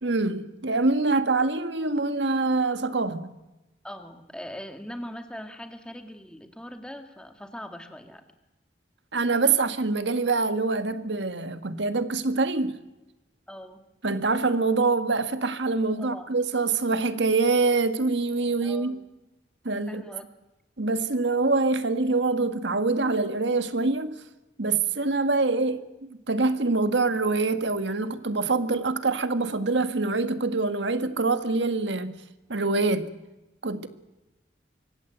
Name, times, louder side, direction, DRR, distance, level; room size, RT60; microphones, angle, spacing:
voice 1, 0.0-3.3 9.1-12.7 14.0-18.9 19.6-20.0 20.8-24.1 24.6-32.1 32.5-33.1 33.6-33.9, right 3 dB, 85° right, 1.7 m, -25 dB
voice 2, 3.8-8.2 13.5-13.8 16.0-16.3 18.6-19.1 19.9-20.3, equal, 5° left, 2.2 m, -41 dB
25.5 x 24.5 x 8.0 m
head